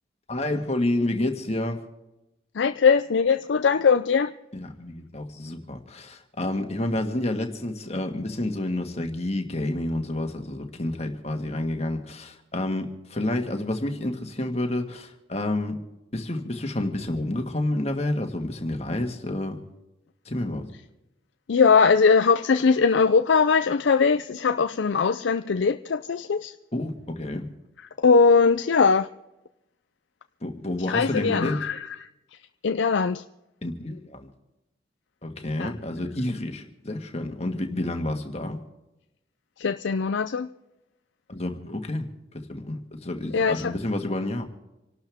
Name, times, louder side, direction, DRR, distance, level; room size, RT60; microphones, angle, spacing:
voice 1, 0.3-1.8 4.5-15.8 16.1-19.6 20.2-20.7 26.7-27.5 30.4-31.6 33.6-34.3 35.2-38.6 41.3-42.1 42.3-44.5, left 1 dB, 35° left, 4 dB, 1.7 m, -29 dB
voice 2, 2.6-4.3 21.5-26.5 28.0-29.1 30.9-32.0 32.6-33.2 35.6-35.7 39.6-40.5 43.3-43.7, left 5 dB, 80° left, 9 dB, 0.5 m, -20 dB
27.5 x 12.5 x 3.6 m, 0.95 s
head